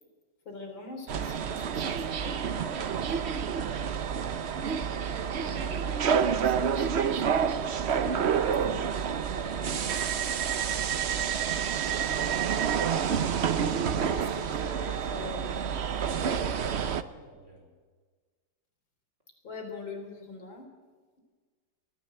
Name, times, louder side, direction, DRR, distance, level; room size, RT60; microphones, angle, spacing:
voice 1, 0.5-2.9 5.4-8.6 9.2-11.0 14.1-15.9 19.4-20.7, left 3 dB, 70° left, 3 dB, 4.3 m, -45 dB
sound 1, 1.1-17.0, right 7 dB, 55° right, 0.7 m, -28 dB
voice 2, 16.1-17.7, equal, 35° right, 1 dB, 5.4 m, -48 dB
23.0 x 14.5 x 7.8 m, 1.5 s
omnidirectional pair, 2.1 m